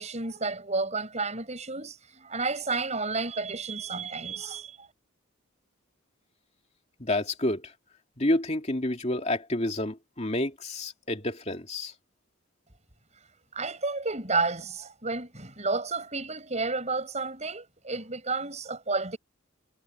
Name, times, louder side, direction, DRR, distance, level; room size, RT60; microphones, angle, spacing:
voice 1, 0.0-4.9 13.5-19.2, right 3 dB, 35° right, 6.6 m, -31 dB
voice 2, 7.0-7.7 8.2-11.9, left 1 dB, 30° left, 2.6 m, -29 dB
head